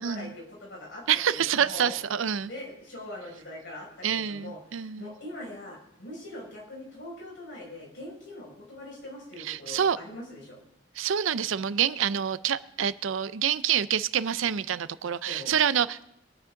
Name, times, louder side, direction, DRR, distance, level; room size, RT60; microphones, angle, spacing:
voice 1, 0.0-2.0 2.4-10.6 15.3-15.5, left 1 dB, 70° left, -3 dB, 5.9 m, -42 dB
voice 2, 1.1-2.5 4.0-5.1 9.4-10.0 11.0-16.1, right 8 dB, 90° right, 16 dB, 0.5 m, -27 dB
23.0 x 8.8 x 3.8 m, 0.74 s
head